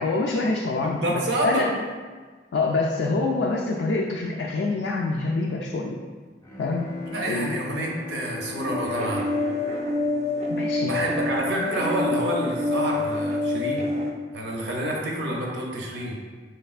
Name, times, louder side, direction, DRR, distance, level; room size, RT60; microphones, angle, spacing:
voice 1, 0.0-1.8 2.5-6.0 6.6-6.9 7.3-7.5 10.5-10.9, left 3 dB, 75° left, -1 dB, 0.3 m, -26 dB
voice 2, 0.8-1.7 7.1-9.3 10.8-13.9 14.3-16.2, right 1 dB, 70° right, -1 dB, 0.7 m, -28 dB
Bowed string instrument, 6.4-11.4, left 4 dB, 20° left, 0.5 m, -39 dB
sound 1, 8.6-14.1, left 2 dB, 40° right, 0.4 m, -27 dB
4.3 x 3.2 x 2.3 m, 1.4 s
head